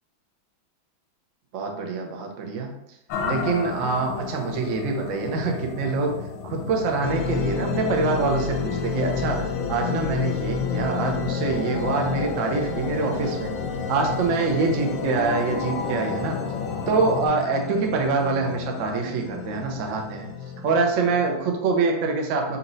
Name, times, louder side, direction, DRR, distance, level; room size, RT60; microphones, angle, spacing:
voice 1, 1.5-2.7 3.2-6.1 6.5-13.5 13.9-16.4 16.9-20.3 20.6-22.6, right 4 dB, 85° right, 2 dB, 0.6 m, -25 dB
sound 1, 3.1-17.3, left 5 dB, 90° left, 1.4 m, -33 dB
sound 2, 7.0-21.4, left 6 dB, 70° left, 1.0 m, -31 dB
4.2 x 2.8 x 3.9 m, 0.83 s
omnidirectional pair, 2.2 m